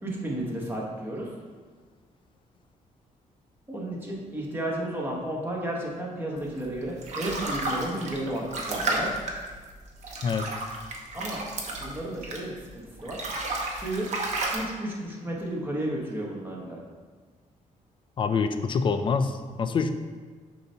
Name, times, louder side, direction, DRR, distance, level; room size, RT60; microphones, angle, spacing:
voice 1, 0.0-1.3 3.7-9.1 11.1-11.4 11.8-13.2 13.8-14.1 14.5-16.8, right 1 dB, 15° right, -3 dB, 1.1 m, -33 dB
sound 1, 6.6-12.7 13.0-14.6, right 2 dB, 55° right, 0.9 m, -32 dB
voice 2, 18.2-20.0, left 5 dB, 35° left, 9 dB, 0.4 m, -26 dB
6.7 x 2.8 x 5.4 m, 1.5 s
cardioid pair, 145°, 14 cm